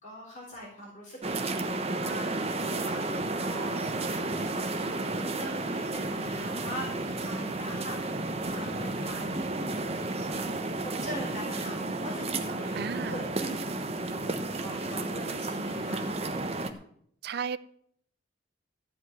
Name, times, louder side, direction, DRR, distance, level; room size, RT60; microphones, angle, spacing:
voice 1, 0.0-10.5 10.8-13.7 14.0-16.1, equal, 40° left, -3 dB, 3.8 m, -43 dB
sound 1, 1.2-16.7, right 2 dB, 30° right, 1.1 m, -32 dB
voice 2, 12.7-13.2 17.2-17.6, right 6 dB, 55° right, 17 dB, 0.4 m, -33 dB
14.5 x 5.5 x 9.6 m, 0.68 s
head